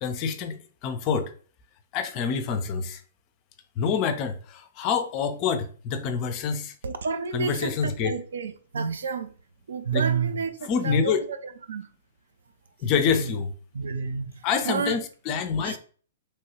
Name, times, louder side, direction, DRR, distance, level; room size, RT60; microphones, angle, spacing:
voice 1, 0.0-1.3 1.9-3.0 3.8-6.7 7.3-8.1 9.9-10.0 10.6-11.2 12.8-13.5 14.4-15.8, left 6 dB, 35° left, 0.4 m, -27 dB
voice 2, 6.8-9.3 9.7-11.4 11.7-11.9 13.2-13.4 13.7-14.3 14.6-15.0 15.6-15.8, right 5 dB, 70° right, 0.4 m, -29 dB
3.1 x 2.3 x 2.9 m
figure-of-eight pair, 115°, 0 cm